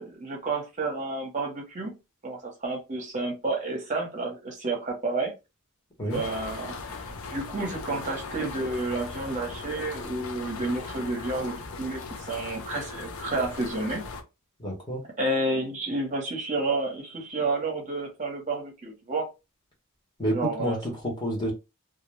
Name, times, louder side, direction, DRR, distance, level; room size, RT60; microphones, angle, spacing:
voice 1, 0.0-1.9 2.2-5.3 6.1-7.0 7.3-12.0 12.3-14.0 15.2-19.3 20.3-20.8, right 2 dB, 35° right, 0.7 m, -30 dB
sound 1, 6.1-14.2, left 4 dB, 80° left, 0.5 m, -38 dB
voice 2, 14.6-15.0 20.2-21.5, equal, 20° left, 0.9 m, -29 dB
2.3 x 2.1 x 3.1 m
head